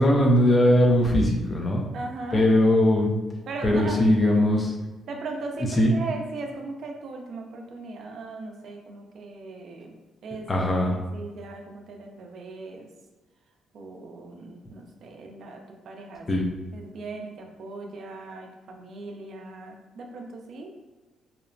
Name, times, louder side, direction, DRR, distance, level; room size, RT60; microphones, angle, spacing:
voice 1, 0.0-1.8 2.3-3.1 3.6-4.7 5.8-5.9 10.5-10.9 16.3-16.5, left 1 dB, 30° left, 0 dB, 0.4 m, -20 dB
voice 2, 1.9-2.5 3.5-4.1 5.1-10.0 10.2-12.9 13.7-16.3 16.7-20.7, right 3 dB, 65° right, 2 dB, 0.4 m, -38 dB
2.8 x 2.0 x 2.5 m, 1.2 s
cardioid pair, 90°, 0 cm